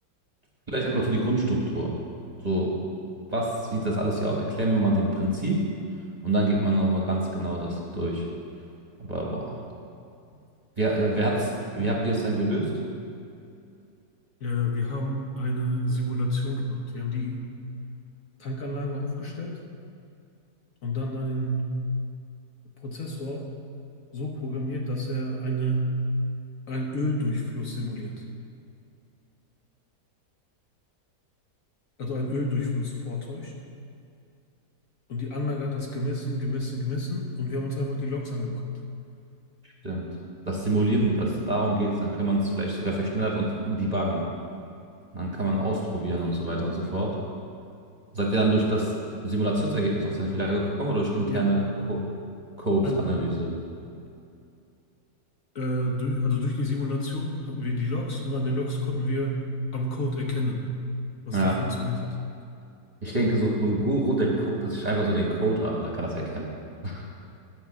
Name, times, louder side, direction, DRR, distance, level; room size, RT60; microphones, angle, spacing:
voice 1, 0.7-1.9 2.4-2.8 3.3-5.6 6.2-8.2 9.0-9.6 10.8-12.7 39.8-40.1 40.5-44.2 45.1-47.1 48.1-48.9 49.2-51.6 51.9-52.1 52.6-53.5 61.3-61.6 63.0-66.5 66.8-67.1, right 1 dB, 25° right, -3 dB, 1.2 m, -26 dB
voice 2, 14.4-17.5 18.4-19.6 20.8-21.6 22.8-23.5 24.1-25.9 26.7-28.2 32.0-33.5 35.1-38.7 51.3-51.5 52.8-53.0 53.4-53.5 55.5-59.4 59.7-60.6 61.3-62.2, left 1 dB, 55° left, 0 dB, 1.2 m, -29 dB
10.5 x 5.5 x 7.3 m, 2.5 s
omnidirectional pair, 1.8 m